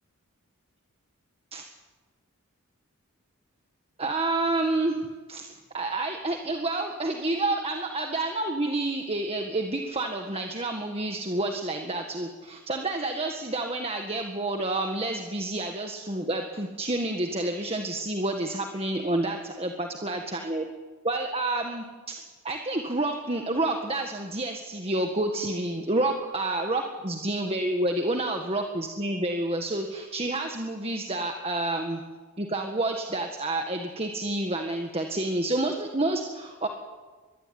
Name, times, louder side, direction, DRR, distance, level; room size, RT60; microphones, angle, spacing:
voice 1, 4.0-5.0 5.3-20.7 21.0-22.2 22.4-32.0 32.4-36.7, right 2 dB, 25° right, 4 dB, 1.7 m, -29 dB
24.0 x 21.5 x 9.5 m, 1.4 s
head